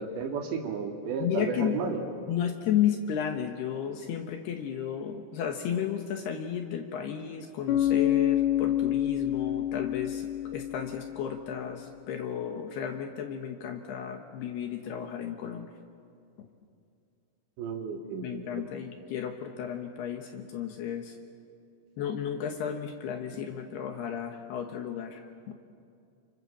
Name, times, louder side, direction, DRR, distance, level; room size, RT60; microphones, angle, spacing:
voice 1, 0.0-2.1 17.6-18.7, right 5 dB, 65° right, 2 dB, 4.2 m, -33 dB
voice 2, 1.2-1.8 2.3-15.7 16.4-16.5 18.2-21.2 22.0-25.5, left 9 dB, 70° left, 4 dB, 2.9 m, -33 dB
Bass guitar, 7.7-11.5, left 12 dB, 45° left, 2.6 m, -28 dB
29.5 x 26.5 x 7.4 m, 2.4 s
omnidirectional pair, 5.7 m